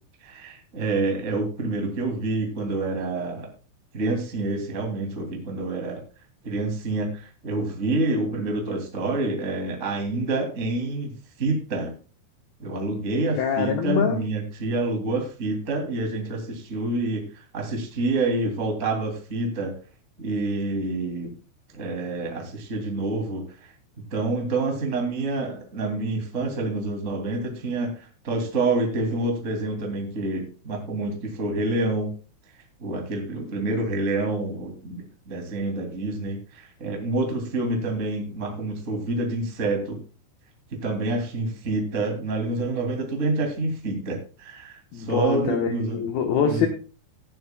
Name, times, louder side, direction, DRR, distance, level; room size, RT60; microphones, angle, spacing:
voice 1, 0.2-3.5 3.9-6.0 6.4-11.1 11.4-11.9 12.6-19.7 20.2-21.3 21.7-23.4 24.1-32.1 32.8-40.0 40.7-46.1 46.4-46.7, right 2 dB, 30° right, 1 dB, 1.5 m, -27 dB
voice 2, 13.4-14.2 44.9-46.7, left 7 dB, 70° left, 3 dB, 2.4 m, -24 dB
17.5 x 11.0 x 2.2 m, 0.36 s
omnidirectional pair, 5.6 m